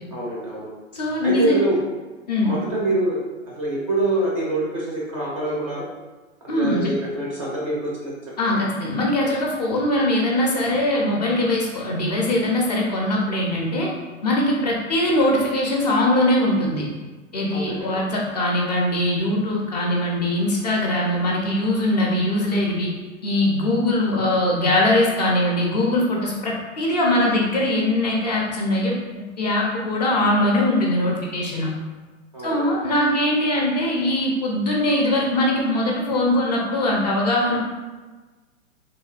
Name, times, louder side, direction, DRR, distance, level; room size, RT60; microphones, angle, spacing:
voice 1, 0.1-0.7 1.2-1.8 2.4-3.2 3.5-5.9 6.5-8.1 8.5-8.6 17.5-18.0 32.3-32.8, right 1 dB, 30° right, -4 dB, 0.4 m, -25 dB
voice 2, 0.9-1.6 2.3-2.6 6.5-6.9 8.4-13.9 14.2-16.9 17.3-22.9 23.2-29.0 29.4-31.7 32.4-37.6, left 1 dB, 35° left, -2 dB, 0.4 m, -21 dB
3.0 x 2.6 x 2.2 m, 1.3 s
figure-of-eight pair, 115°, 39 cm